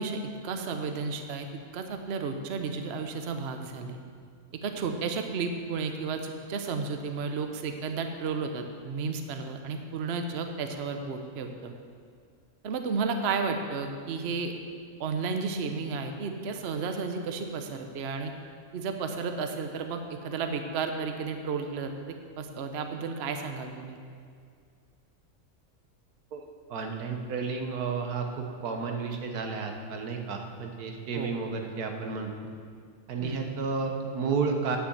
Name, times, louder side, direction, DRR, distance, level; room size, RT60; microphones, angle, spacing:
voice 1, 0.0-1.5 1.7-4.0 4.6-11.7 12.6-14.5 15.0-18.3 18.7-24.0 31.1-31.4 33.2-33.5, right 4 dB, 50° right, 6 dB, 0.9 m, -33 dB
voice 2, 26.7-32.5 33.1-34.8, right 4 dB, 90° right, 3 dB, 1.5 m, -32 dB
10.0 x 6.1 x 7.8 m, 2.1 s
omnidirectional pair, 1.6 m